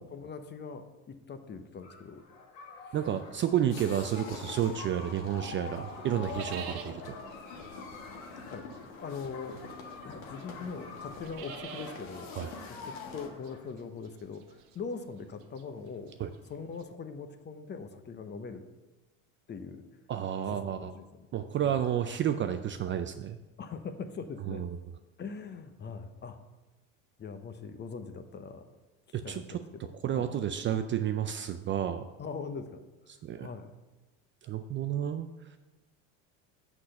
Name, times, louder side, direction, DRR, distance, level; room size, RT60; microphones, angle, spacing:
voice 1, 0.0-2.2 2.8-3.0 8.5-8.7 9.0-9.6 10.0-12.3 12.7-16.1 16.5-18.6 19.5-19.9 20.5-21.2 21.6-21.8 23.6-24.6 25.2-26.4 27.2-28.6 29.2-30.3 32.2-32.7 33.4-33.8, left 5 dB, 25° left, 9 dB, 0.8 m, -41 dB
sound 1, 1.8-13.7, left 4 dB, 60° left, 1.8 m, -50 dB
voice 2, 2.9-7.1 12.3-12.5 16.2-16.3 20.1-20.9 21.3-23.4 24.5-24.8 29.1-29.4 30.0-32.0 33.2-33.5 34.4-35.3, right 10 dB, 30° right, 8 dB, 0.4 m, -31 dB
sound 2, 3.0-5.1 5.4-16.8, right 8 dB, 60° right, 1.0 m, -49 dB
sound 3, 3.7-13.3, left 4 dB, 80° left, 1.5 m, -44 dB
6.2 x 6.0 x 6.6 m, 1.1 s
hypercardioid pair, 95°, 41 cm